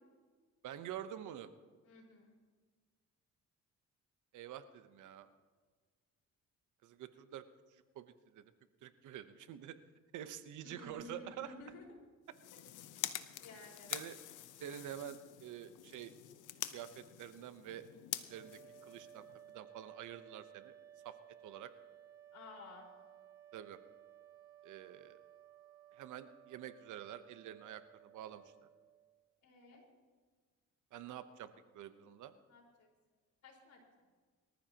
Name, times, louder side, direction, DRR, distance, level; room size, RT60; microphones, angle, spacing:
voice 1, 0.6-1.5 4.3-5.3 6.8-7.4 7.9-8.4 8.8-9.8 10.1-11.5 13.9-14.2 14.6-16.1 16.7-17.9 18.3-19.3 19.5-20.7 21.0-21.2 21.4-21.7 23.5-23.8 24.6-25.2 25.9-28.4 30.9-32.3, right 10 dB, 80° right, 11 dB, 0.9 m, -48 dB
voice 2, 1.8-2.4 10.6-11.8 13.4-14.0 22.3-22.9 29.4-29.8 32.5-32.9 33.4-33.8, left 2 dB, 70° left, -1 dB, 4.8 m, -54 dB
sound 1, 12.2-19.5, left 13 dB, 85° left, 0.9 m, -46 dB
sound 2, 18.3-29.2, right 10 dB, 55° right, 1.9 m, -59 dB
23.5 x 14.5 x 2.9 m, 1.5 s
cardioid pair, 90°, 30 cm